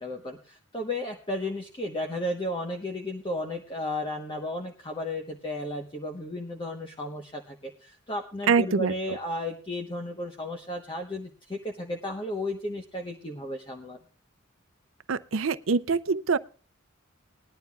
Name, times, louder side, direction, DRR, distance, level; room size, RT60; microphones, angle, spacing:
voice 1, 0.0-14.0, left 1 dB, 25° left, 1.1 m, -34 dB
voice 2, 8.5-8.9 15.1-16.4, right 5 dB, 80° right, 0.6 m, -24 dB
20.0 x 11.5 x 2.4 m
head